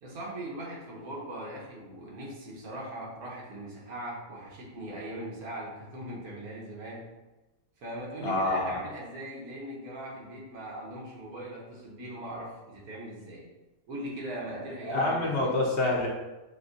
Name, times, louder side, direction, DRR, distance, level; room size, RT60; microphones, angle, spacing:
voice 1, 0.0-7.1 7.8-13.5 13.9-15.5, right 1 dB, 65° right, -3 dB, 1.3 m, -40 dB
voice 2, 8.2-8.7 14.9-16.1, left 2 dB, 55° left, -3 dB, 0.8 m, -26 dB
5.9 x 2.6 x 2.5 m, 1.1 s
omnidirectional pair, 1.7 m